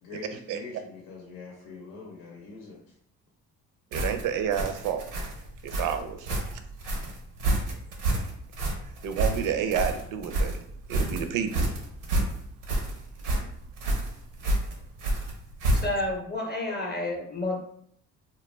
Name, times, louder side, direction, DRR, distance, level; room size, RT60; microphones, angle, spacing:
voice 1, 0.0-2.8, left 3 dB, 85° left, -1 dB, 0.7 m, -43 dB
voice 2, 3.9-5.0 5.6-6.3 9.0-10.6 10.9-11.7, right 8 dB, 60° right, 8 dB, 0.5 m, -29 dB
sound 1, 3.9-16.1, right 1 dB, 90° right, 0.8 m, -29 dB
voice 3, 15.8-17.6, left 2 dB, 25° left, 0 dB, 0.6 m, -30 dB
2.3 x 2.2 x 3.1 m, 0.69 s
supercardioid pair, 65°, 37 cm